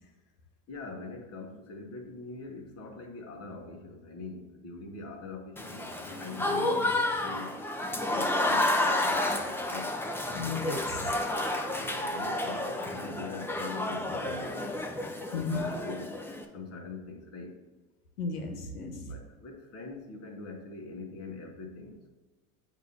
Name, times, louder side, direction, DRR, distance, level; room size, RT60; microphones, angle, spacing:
voice 1, 0.7-7.7 8.1-9.9 11.6-14.8 15.3-16.2 16.5-17.6 18.9-22.1, left 3 dB, 30° left, 2 dB, 1.3 m, -43 dB
Applause / Crowd, 5.6-16.4, left 1 dB, 5° left, 0.5 m, -31 dB
voice 2, 10.3-11.2 15.3-15.6 18.2-19.1, left 4 dB, 90° left, 4 dB, 1.2 m, -34 dB
7.8 x 2.9 x 5.1 m, 1.2 s
hypercardioid pair, 100°, 45 cm